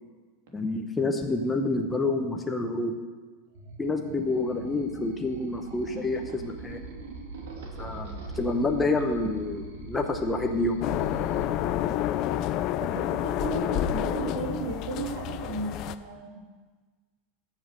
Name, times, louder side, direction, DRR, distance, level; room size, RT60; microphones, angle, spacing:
voice 1, 0.5-2.9 3.8-6.8 7.8-10.8, left 2 dB, 10° left, 3 dB, 0.8 m, -28 dB
sound 1, 3.5-11.4, right 3 dB, 90° right, 2.1 m, -41 dB
sound 2, 10.8-16.0, left 12 dB, 40° left, 0.5 m, -29 dB
voice 2, 12.8-16.3, right 3 dB, 70° right, -1 dB, 3.1 m, -34 dB
12.5 x 7.3 x 6.4 m, 1.4 s
supercardioid pair, 155°, 0 cm